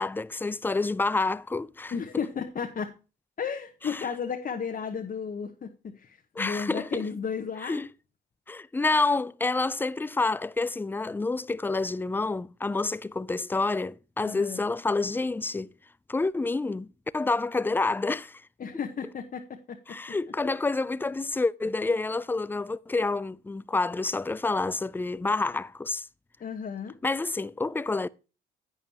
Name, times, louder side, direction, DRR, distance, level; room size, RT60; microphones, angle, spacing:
voice 1, 0.0-1.9 3.8-4.0 6.4-7.1 7.6-7.9 8.5-15.7 16.1-18.4 19.9-26.1 27.0-28.1, left 3 dB, 10° left, 0.4 m, -28 dB
voice 2, 1.9-2.9 3.4-7.8 14.2-14.6 18.6-20.0 20.4-20.6 26.4-27.0, left 6 dB, 45° left, 1.1 m, -34 dB
10.5 x 8.9 x 2.9 m
cardioid pair, 90°, 20 cm